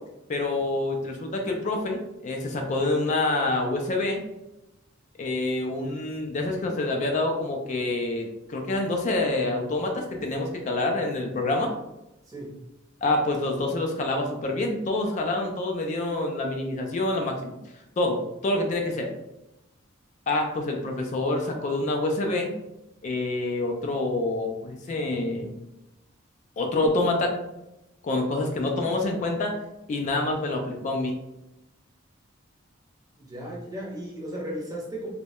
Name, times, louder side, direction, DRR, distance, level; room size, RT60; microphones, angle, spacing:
voice 1, 0.3-4.2 5.2-11.7 13.0-17.6 18.0-19.1 20.3-22.5 23.0-25.5 26.6-27.3 28.0-29.6 29.9-31.2, left 2 dB, 35° left, 2 dB, 0.3 m, -27 dB
voice 2, 33.2-35.1, right 1 dB, 20° right, -4 dB, 0.6 m, -35 dB
2.2 x 2.0 x 2.8 m, 0.93 s
head